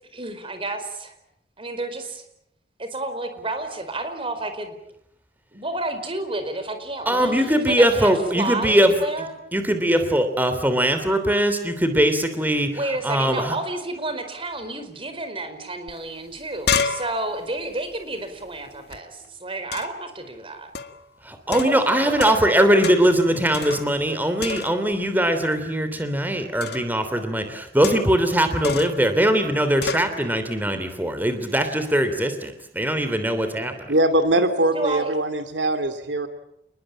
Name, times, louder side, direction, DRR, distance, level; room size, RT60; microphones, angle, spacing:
voice 1, 0.1-1.1 1.6-2.2 2.8-4.7 5.5-9.3 12.7-20.7 21.5-22.4 34.4-34.5 34.7-35.1, right 2 dB, 30° right, 8 dB, 4.6 m, -30 dB
voice 2, 7.1-8.9 9.5-12.7 13.0-13.5 21.2-33.7, right 1 dB, 10° right, 8 dB, 3.2 m, -21 dB
sound 1, 15.9-16.0 16.3-19.0 19.7-20.1 20.8-21.0 21.5-22.6 22.8-23.2 23.5-24.1 24.4-25.0 26.6-27.0 27.8-28.3 28.6-29.1 29.8-30.1, left 6 dB, 65° left, 1.9 m, -30 dB
voice 3, 33.9-36.3, right 1 dB, 80° right, 8 dB, 2.5 m, -21 dB
29.0 x 21.0 x 8.9 m, 0.76 s
head